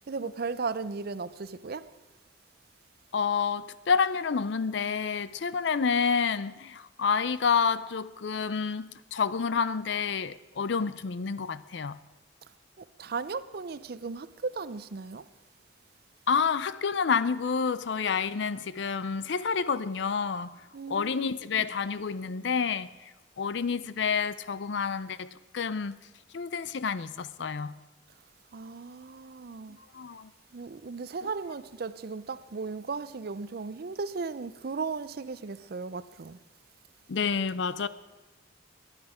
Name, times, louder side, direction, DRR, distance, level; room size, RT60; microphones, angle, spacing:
voice 1, 0.1-1.9 12.8-15.2 20.7-21.7 28.5-29.8 30.5-36.4, right 4 dB, 55° right, 0.5 m, -36 dB
voice 2, 3.1-12.0 16.3-20.6 20.9-22.9 23.4-26.0 26.3-27.7 29.9-30.3 37.1-37.9, left 6 dB, 65° left, 0.5 m, -29 dB
21.0 x 10.5 x 5.0 m
head